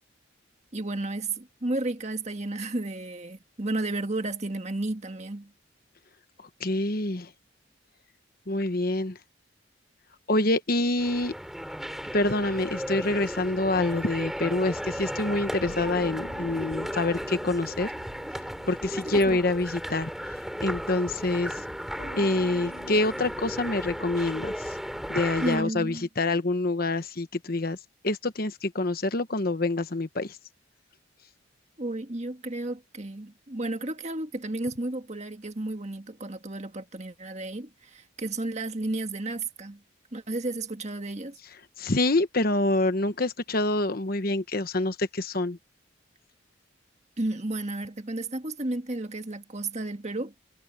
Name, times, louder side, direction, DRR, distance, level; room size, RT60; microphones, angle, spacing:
voice 1, 0.7-5.5 19.0-19.4 25.4-26.1 31.8-39.8 40.1-41.4 47.2-50.3, right 2 dB, 35° right, 1.7 m, -32 dB
voice 2, 6.6-7.3 8.5-9.2 10.3-11.3 12.1-17.9 18.7-20.1 20.6-21.6 22.2-24.8 25.1-27.8 28.0-30.4 41.8-45.6, left 2 dB, 50° left, 1.2 m, -26 dB
sound 1, 11.0-25.6, equal, ahead, 3.5 m, -35 dB
sound 2, 13.6-24.6, left 1 dB, 90° left, 6.6 m, -50 dB
head